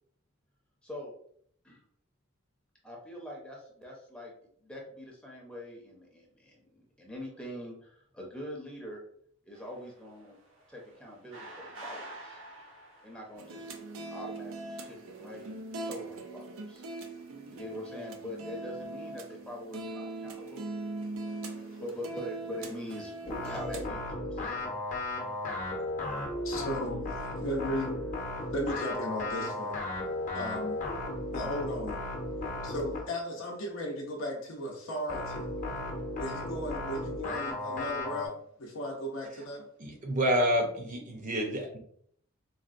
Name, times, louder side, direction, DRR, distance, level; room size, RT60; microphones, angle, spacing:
voice 1, 0.8-1.1 1.6-1.8 2.8-4.3 4.6-9.0 9.4-10.4 10.7-12.4 13.0-13.7 14.1-15.6 15.9-16.9 17.5-20.6 21.8-24.8, left 1 dB, 5° left, -2 dB, 0.6 m, -43 dB
sound 1, 9.5-13.9 14.6-15.5, right 2 dB, 70° right, 0.8 m, -48 dB
sound 2, 13.3-23.9, right 2 dB, 90° right, 0.5 m, -41 dB
voice 2, 21.2-21.9 26.4-27.0 27.4-27.9 28.3-29.8 30.3-30.8 31.3-32.0 32.6-35.5 36.2-39.7, equal, 70° left, -2 dB, 0.6 m, -36 dB
sound 3, 23.3-33.1 35.1-38.3, left 2 dB, 40° left, 0.7 m, -35 dB
voice 3, 39.8-41.8, equal, 40° right, 2 dB, 0.6 m, -28 dB
4.0 x 2.1 x 2.5 m, 0.65 s
head